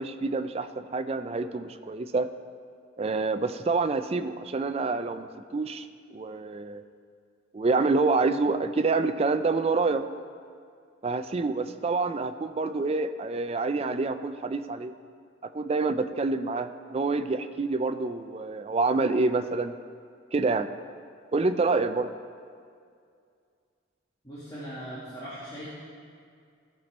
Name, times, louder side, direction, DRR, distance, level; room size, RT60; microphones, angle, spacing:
voice 1, 0.0-2.3 3.0-6.8 7.5-10.0 11.0-14.9 15.5-19.7 20.3-20.7 21.3-22.1, right 3 dB, 30° right, 10 dB, 0.3 m, -27 dB
voice 2, 24.2-25.7, equal, 20° left, -11 dB, 1.9 m, -39 dB
15.0 x 5.9 x 4.3 m, 2.2 s
head